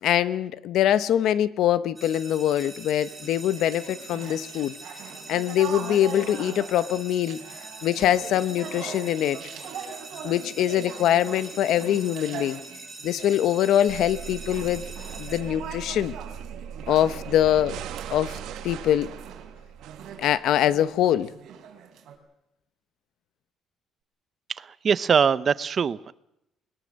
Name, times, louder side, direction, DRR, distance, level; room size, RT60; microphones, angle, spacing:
voice 1, 0.0-4.7 5.3-7.4 7.8-9.4 10.2-12.6 13.0-14.8 15.2-16.1 16.9-17.8 18.1-18.4 18.6-19.1 20.2-21.3, left 11 dB, 75° left, 14 dB, 0.9 m, -23 dB
sound 1, 2.0-15.4, right 2 dB, 10° right, 5.6 m, -43 dB
sound 2, 2.9-22.2, right 7 dB, 65° right, 3.6 m, -42 dB
sound 3, 13.9-20.7, right 8 dB, 85° right, 1.6 m, -39 dB
voice 2, 24.6-26.1, right 6 dB, 40° right, 16 dB, 0.7 m, -22 dB
21.5 x 21.0 x 6.5 m, 0.84 s
cardioid pair, 125°, 0 cm